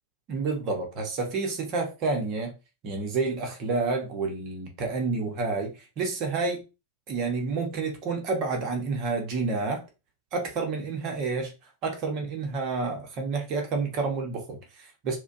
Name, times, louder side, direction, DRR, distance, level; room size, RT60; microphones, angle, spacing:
voice 1, 0.3-2.5 2.8-6.6 7.1-9.8 10.3-11.5 11.8-15.2, right 4 dB, 40° right, 1.1 m, -29 dB
4.8 x 2.3 x 2.7 m
figure-of-eight pair, 90°, 0 cm